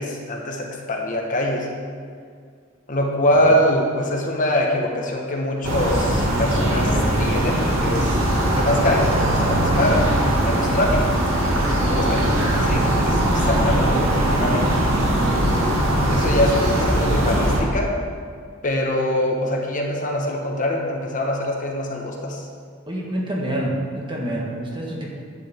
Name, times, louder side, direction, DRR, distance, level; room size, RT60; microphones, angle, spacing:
voice 1, 0.0-1.7 2.9-10.1 10.4-11.2 11.9-14.7 16.1-17.9 18.6-22.5, left 1 dB, 40° left, 0 dB, 1.2 m, -24 dB
sound 1, 5.6-17.6, right 1 dB, 80° right, 2.0 m, -20 dB
voice 2, 22.9-25.0, right 1 dB, 25° right, -2 dB, 1.6 m, -27 dB
11.0 x 8.0 x 4.5 m, 2.1 s
head